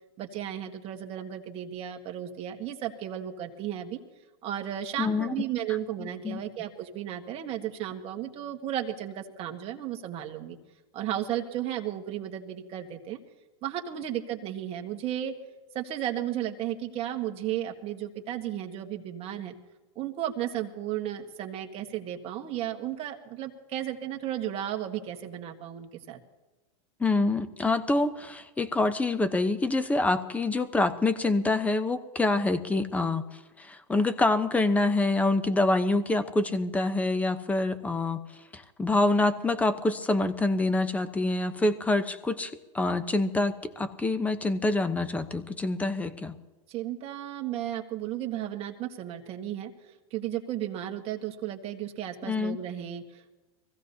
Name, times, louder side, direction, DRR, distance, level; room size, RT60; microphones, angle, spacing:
voice 1, 0.2-4.0 4.4-10.6 10.9-13.2 13.6-15.3 15.7-19.5 19.9-26.2 46.7-53.4, right 11 dB, 35° right, 3 dB, 1.6 m, -34 dB
voice 2, 5.0-5.4 6.0-6.4 27.0-33.2 33.6-38.2 38.5-46.3 52.2-52.6, left 2 dB, 10° left, 11 dB, 0.8 m, -26 dB
24.0 x 15.5 x 2.8 m, 1.2 s
supercardioid pair, 130°, 17 cm